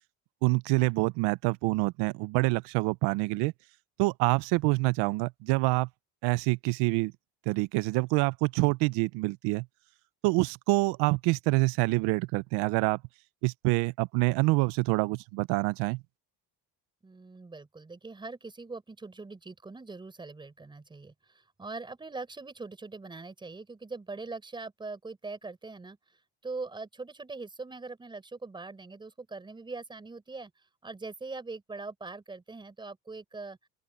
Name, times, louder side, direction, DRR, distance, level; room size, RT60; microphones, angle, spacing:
voice 1, 0.4-3.5 4.0-5.9 6.2-7.1 7.5-9.6 10.2-13.0 13.4-16.0, right 24 dB, 90° right, 0.7 m, -26 dB
voice 2, 17.0-26.0 26.4-30.5 30.8-33.6, right 3 dB, 10° right, 5.2 m, -42 dB
open air
cardioid pair, 175°, 40 cm